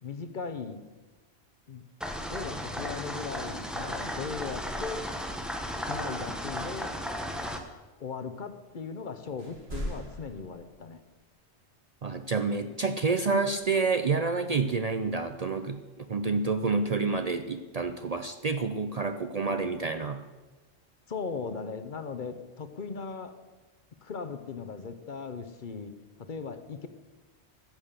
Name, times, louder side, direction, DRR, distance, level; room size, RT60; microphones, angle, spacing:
voice 1, 0.0-0.8 1.7-1.8 2.2-5.1 5.7-7.0 8.0-11.0 21.1-23.4 24.0-26.9, left 5 dB, 50° left, 10 dB, 0.9 m, -38 dB
sound 1, 2.0-7.6, equal, ahead, 0.9 m, -35 dB
sound 2, 9.4-11.0 13.5-13.6, equal, 65° right, 2.7 m, -38 dB
voice 2, 12.0-20.2, right 4 dB, 45° right, 9 dB, 0.5 m, -28 dB
14.5 x 7.4 x 6.7 m, 1.2 s
omnidirectional pair, 1.1 m